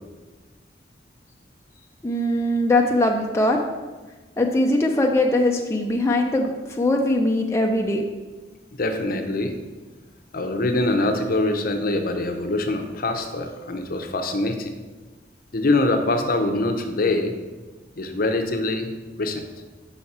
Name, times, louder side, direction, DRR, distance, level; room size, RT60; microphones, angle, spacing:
voice 1, 2.0-3.6 4.4-8.0, left 1 dB, 15° left, 1 dB, 0.4 m, -21 dB
voice 2, 8.7-9.5 10.3-14.7 15.5-17.3 18.0-19.4, left 2 dB, 50° left, 6 dB, 0.7 m, -24 dB
5.9 x 5.7 x 4.2 m, 1.3 s
head